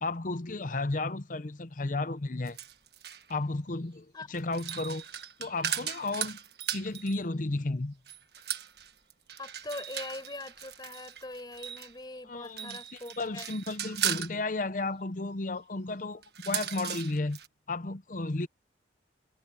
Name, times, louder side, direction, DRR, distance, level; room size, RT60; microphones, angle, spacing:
voice 1, 0.0-2.6 3.3-5.0 5.4-6.4 6.7-8.0 12.2-12.8 13.2-17.4 17.7-18.5, left 2 dB, 45° left, 0.8 m, -33 dB
sound 1, 2.4-3.3 4.3-7.2 8.1-11.9 12.4-14.4 16.2-17.5, right 10 dB, 60° right, 1.6 m, -37 dB
voice 2, 9.4-13.5, left 2 dB, 25° left, 6.8 m, -42 dB
head